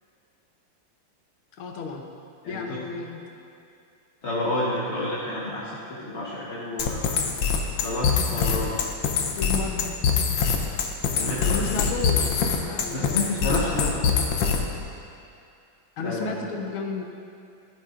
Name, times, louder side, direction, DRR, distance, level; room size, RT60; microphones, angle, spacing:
voice 1, 1.5-2.0 2.5-3.2 9.4-10.1 11.1-13.9 16.0-17.0, left 4 dB, 85° left, 2 dB, 1.8 m, -33 dB
voice 2, 2.4-2.8 4.2-7.2 7.8-8.7 11.2-11.6 12.9-14.1 16.0-16.3, left 1 dB, 40° left, -7 dB, 1.2 m, -30 dB
sound 1, 6.8-14.8, left 6 dB, 65° left, 1.4 m, -24 dB
12.5 x 11.0 x 2.5 m, 2.6 s
omnidirectional pair, 2.3 m